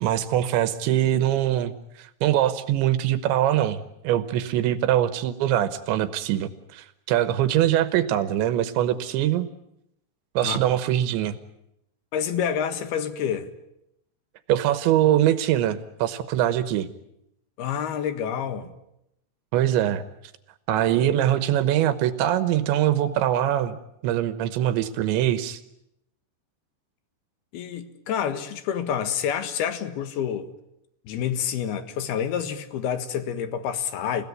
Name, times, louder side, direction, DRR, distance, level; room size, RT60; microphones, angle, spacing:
voice 1, 0.0-9.5 10.3-11.4 14.5-16.9 19.5-20.0 20.7-23.8 24.0-25.6, right 12 dB, 75° right, 3.2 m, -23 dB
voice 2, 12.1-13.5 17.6-18.7 27.5-30.5 31.1-34.2, left 8 dB, 65° left, 3.1 m, -28 dB
29.5 x 17.0 x 9.6 m
omnidirectional pair, 5.5 m